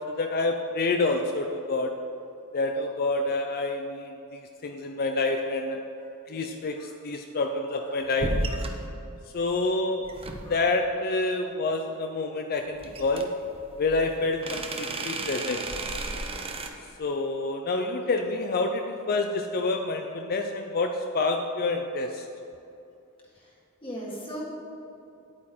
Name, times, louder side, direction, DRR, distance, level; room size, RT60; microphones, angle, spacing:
voice 1, 0.1-1.9 2.5-5.8 6.3-8.3 9.3-10.1 10.5-13.3 13.8-15.7 17.0-22.3, left 3 dB, 45° left, 4 dB, 0.5 m, -28 dB
sound 1, 8.2-8.9 10.0-10.7 12.8-16.7, right 2 dB, 25° right, 0.7 m, -33 dB
voice 2, 23.8-24.4, right 1 dB, 25° left, -5 dB, 1.8 m, -37 dB
9.6 x 8.7 x 4.4 m, 2.8 s
head